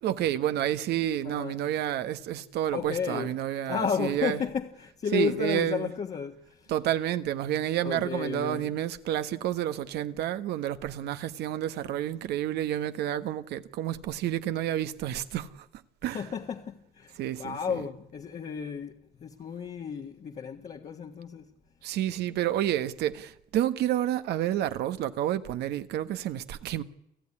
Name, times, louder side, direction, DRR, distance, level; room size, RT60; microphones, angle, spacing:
voice 1, 0.0-4.4 5.1-5.9 6.7-15.6 16.0-16.2 17.2-17.8 21.8-26.8, right 12 dB, 75° right, 1.4 m, -30 dB
voice 2, 1.2-1.6 2.7-3.4 3.7-6.7 7.8-8.7 16.1-21.5, left 6 dB, 45° left, 1.6 m, -33 dB
29.5 x 15.0 x 10.0 m
cardioid pair, 110°, 17 cm